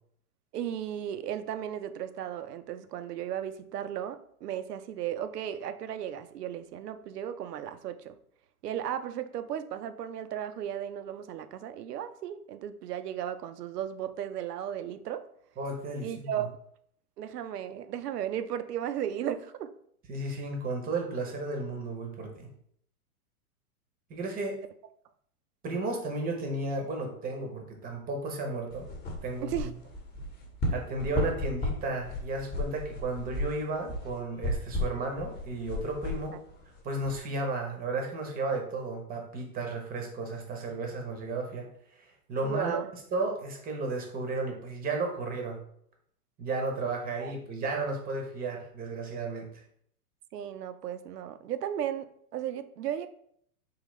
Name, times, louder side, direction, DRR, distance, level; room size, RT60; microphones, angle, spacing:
voice 1, 0.5-8.2 8.6-15.3 16.0-16.5 17.2-19.7 29.4-29.7 42.4-42.9 47.2-47.3 50.3-53.1, right 10 dB, 85° right, 11 dB, 0.6 m, -35 dB
voice 2, 15.6-16.5 20.1-22.5 24.1-24.6 25.6-28.9 29.2-29.5 30.7-36.4 36.8-41.7 42.0-42.8 43.1-45.6 46.4-49.5, right 2 dB, 20° right, 3 dB, 0.7 m, -33 dB
sound 1, 28.7-37.2, left 1 dB, 20° left, 0.9 m, -35 dB
3.8 x 2.8 x 3.1 m, 0.66 s
hypercardioid pair, 120°, 46 cm